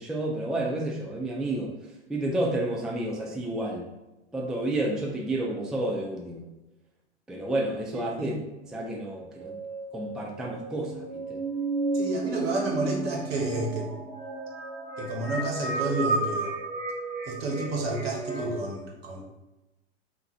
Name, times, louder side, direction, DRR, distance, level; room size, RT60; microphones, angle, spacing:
voice 1, 0.0-1.7 2.1-3.9 4.3-6.4 7.3-9.6 9.9-11.4, right 1 dB, ahead, -2 dB, 0.4 m, -30 dB
sound 1, 8.9-18.5, right 3 dB, 35° right, 1.1 m, -33 dB
voice 2, 11.9-13.9 15.0-16.5 17.3-19.2, right 2 dB, 60° right, -1 dB, 1.3 m, -30 dB
3.8 x 2.8 x 4.3 m, 1.0 s
figure-of-eight pair, 90°, 34 cm